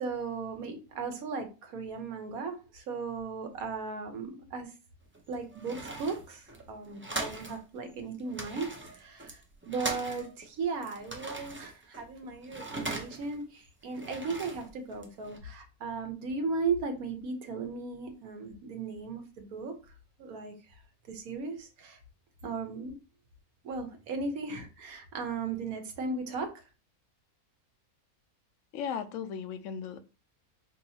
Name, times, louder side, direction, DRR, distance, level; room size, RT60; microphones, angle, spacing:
voice 1, 0.0-4.7 5.3-19.7 20.2-20.5 21.1-22.0 22.4-23.0 23.6-26.6, right 4 dB, 75° right, 1.4 m, -36 dB
sound 1, 5.0-7.6 7.9-10.5 10.8-13.4 13.8-15.4, right 2 dB, 20° right, 0.3 m, -40 dB
voice 2, 28.7-30.0, left 7 dB, 65° left, 0.9 m, -36 dB
5.3 x 2.9 x 2.8 m
omnidirectional pair, 1.6 m